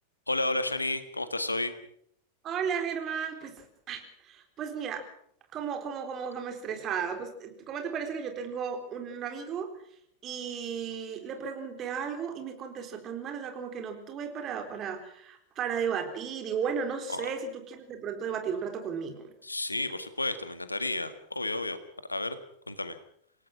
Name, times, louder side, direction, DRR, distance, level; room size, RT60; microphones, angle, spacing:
voice 1, 0.3-1.7 17.1-17.3 19.4-21.8 22.1-22.4 22.7-23.0, left 2 dB, 80° left, 11 dB, 1.8 m, -31 dB
voice 2, 2.4-5.0 5.5-9.7 10.2-19.3, right 7 dB, 30° right, 5 dB, 4.0 m, -34 dB
27.5 x 17.5 x 6.1 m, 0.68 s
figure-of-eight pair, 90°, 0 cm